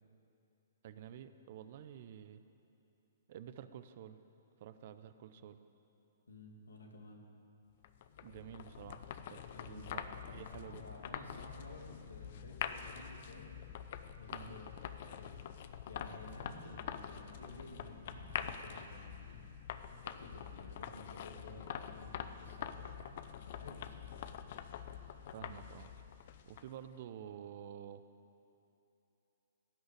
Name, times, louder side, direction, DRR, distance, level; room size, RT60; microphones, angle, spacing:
voice 1, 0.8-2.4 3.3-4.2 4.6-5.6 8.2-10.0 10.3-10.8 14.3-14.6 25.3-25.9 26.5-28.0, right 9 dB, 50° right, 11 dB, 0.6 m, -50 dB
voice 2, 6.3-7.2 9.5-13.5 14.2-15.3 15.9-19.4 20.0-23.0 23.5-24.2, left 1 dB, 80° left, 2 dB, 2.0 m, -53 dB
sound 1, 7.8-26.9, left 9 dB, 50° left, 0.6 m, -45 dB
Explosion, 18.1-19.8, equal, 80° right, 2.4 m, -57 dB
16.0 x 6.4 x 8.5 m, 2.9 s
figure-of-eight pair, 120°, 0 cm